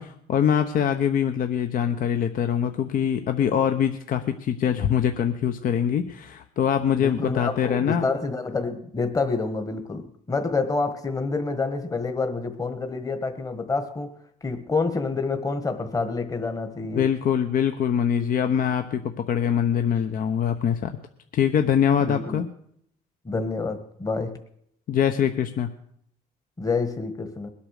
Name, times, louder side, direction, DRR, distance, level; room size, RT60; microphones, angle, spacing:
voice 1, 0.0-8.0 16.9-20.9 21.3-22.5 24.9-25.7, left 8 dB, 55° left, 7 dB, 1.0 m, -23 dB
voice 2, 7.0-14.1 14.4-17.1 22.0-22.4 23.2-24.4 26.6-27.5, left 4 dB, 20° left, 7 dB, 1.6 m, -28 dB
21.0 x 8.7 x 6.6 m, 0.71 s
cardioid pair, 110°, 17 cm